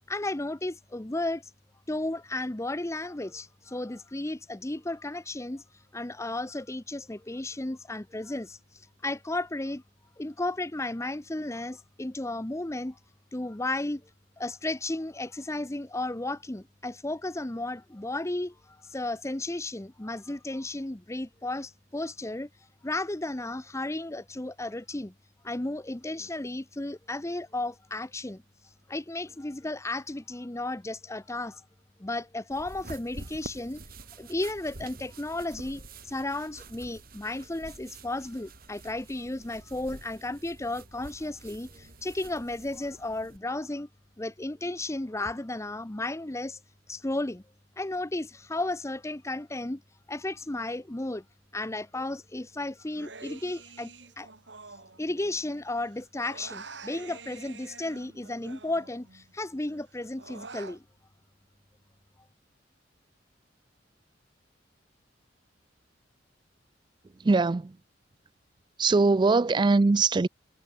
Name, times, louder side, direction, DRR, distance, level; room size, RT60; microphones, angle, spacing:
voice 1, 0.1-1.4 1.9-5.6 5.9-9.8 10.2-13.0 13.3-14.0 14.4-22.5 22.8-25.1 25.4-28.4 28.9-31.6 32.0-33.8 34.2-43.9 44.2-46.6 46.9-47.4 47.8-49.8 50.1-51.2 51.5-54.3 55.0-60.8, left 2 dB, 15° left, 0.8 m, -34 dB
sound 1, 32.5-43.4, right 2 dB, 55° right, 3.4 m, -48 dB
Human voice, 52.9-55.6 55.8-59.3 59.7-60.8, right 4 dB, 70° right, 3.5 m, -47 dB
voice 2, 67.2-67.8 68.8-70.3, right 3 dB, 25° right, 0.4 m, -22 dB
head